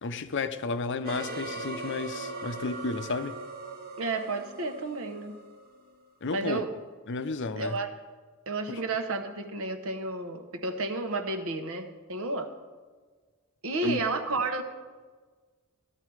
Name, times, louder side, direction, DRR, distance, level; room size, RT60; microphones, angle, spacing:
voice 1, 0.0-3.4 6.2-6.7 7.1-7.8 8.7-8.8 13.8-14.0, left 3 dB, 55° left, 0.6 m, -32 dB
sound 1, 1.0-6.0, right 3 dB, 45° right, 1.3 m, -40 dB
voice 2, 4.0-5.4 6.3-6.7 7.6-7.9 8.5-12.5 13.6-14.6, right 3 dB, 70° right, 1.1 m, -31 dB
15.5 x 12.5 x 4.7 m
head